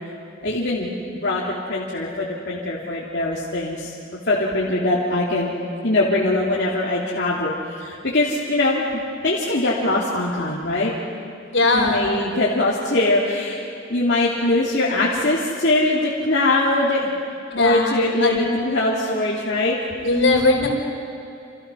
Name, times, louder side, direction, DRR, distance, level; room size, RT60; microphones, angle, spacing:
voice 1, 0.4-0.9 1.2-1.4 1.7-3.9 4.3-5.5 5.8-10.9 11.7-13.6 13.9-17.1 17.6-19.8, left 2 dB, 55° left, -6 dB, 3.1 m, -22 dB
voice 2, 11.5-12.0 17.5-18.4 20.0-20.7, left 2 dB, 70° left, 2 dB, 4.6 m, -19 dB
29.0 x 28.0 x 6.4 m, 2.6 s
head